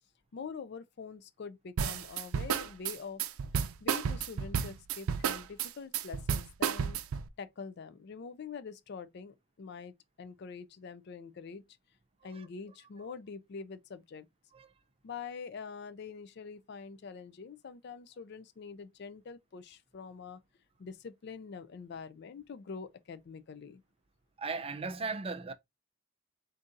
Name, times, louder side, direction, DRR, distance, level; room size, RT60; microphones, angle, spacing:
voice 1, 0.3-3.2 3.5-7.0 7.4-11.6 12.2-14.3 15.0-20.4 20.8-23.8, left 5 dB, 50° left, 0.4 m, -45 dB
sound 1, 1.8-7.3, right 7 dB, 90° right, 0.4 m, -32 dB
voice 2, 24.4-25.5, right 4 dB, 25° right, 0.4 m, -37 dB
3.9 x 2.6 x 3.7 m
head